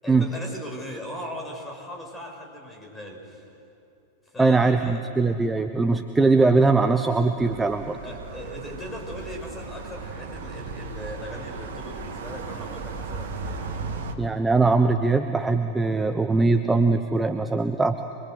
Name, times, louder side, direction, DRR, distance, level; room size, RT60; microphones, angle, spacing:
voice 1, 0.0-3.5 4.3-5.0 8.0-13.9, left 1 dB, 10° left, 1 dB, 6.1 m, -38 dB
voice 2, 4.4-8.0 14.2-18.0, right 3 dB, 10° right, 8 dB, 0.9 m, -21 dB
sound 1, 7.4-14.1, right 4 dB, 55° right, 2.0 m, -36 dB
25.0 x 23.0 x 7.9 m, 2.8 s
figure-of-eight pair, 90°, 0 cm